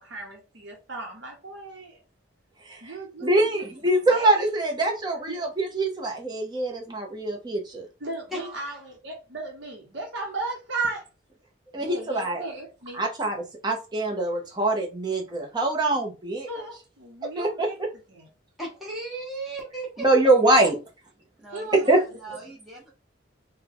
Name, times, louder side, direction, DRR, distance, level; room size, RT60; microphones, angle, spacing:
voice 1, 0.0-2.0 2.8-4.4 5.3-5.4 8.0-11.1 11.7-13.0 16.5-17.7 18.1-18.3 21.5-22.0, right 3 dB, 65° right, 0.9 m, -36 dB
voice 2, 3.2-7.9 11.7-12.4 13.0-13.4 13.6-16.5 17.4-17.7 20.0-20.8 21.9-22.0, right 2 dB, 20° right, 0.8 m, -23 dB
voice 3, 8.3-8.8 18.6-20.0 21.4-22.9, right 2 dB, ahead, 1.0 m, -37 dB
3.6 x 2.2 x 3.5 m
head